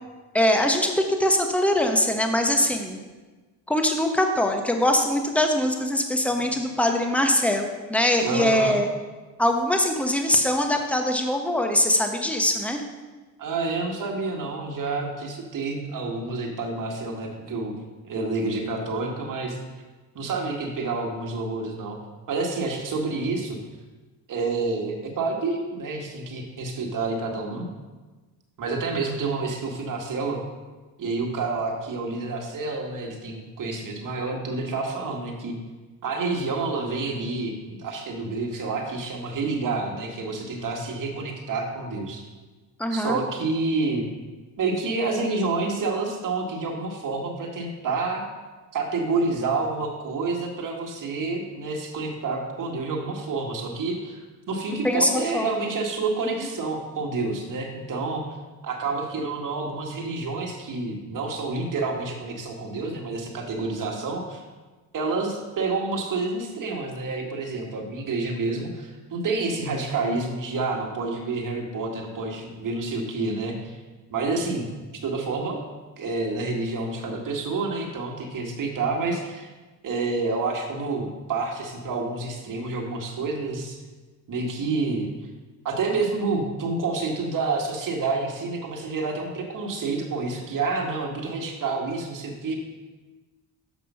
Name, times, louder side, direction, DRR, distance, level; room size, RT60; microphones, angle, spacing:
voice 1, 0.3-3.0 3.7-8.9 9.4-12.8 42.8-43.2 54.8-55.5, left 1 dB, 5° left, 4 dB, 1.2 m, -22 dB
voice 2, 8.2-8.8 13.4-17.7 18.0-19.6 20.2-22.0 22.3-23.6 24.3-27.7 28.6-30.4 31.0-35.5 36.0-42.2 42.9-44.0 44.6-48.2 48.7-54.2 54.5-58.2 58.6-64.4 64.9-73.8 74.1-74.7 75.0-75.6 76.0-79.5 79.8-83.8 84.3-85.1 85.6-92.6, right 3 dB, 55° right, 1 dB, 1.8 m, -28 dB
7.3 x 5.4 x 5.6 m, 1.3 s
supercardioid pair, 60°, 39 cm